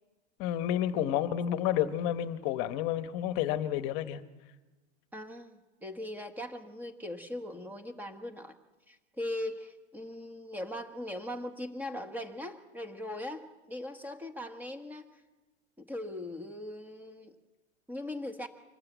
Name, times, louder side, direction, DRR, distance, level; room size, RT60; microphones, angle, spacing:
voice 1, 0.4-4.2, left 11 dB, 35° left, 11 dB, 1.1 m, -30 dB
voice 2, 5.1-8.5 8.9-15.1 15.8-17.3 17.9-18.5, left 1 dB, 5° right, 7 dB, 1.2 m, -40 dB
24.5 x 19.0 x 8.1 m, 1.2 s
supercardioid pair, 160°, 35 cm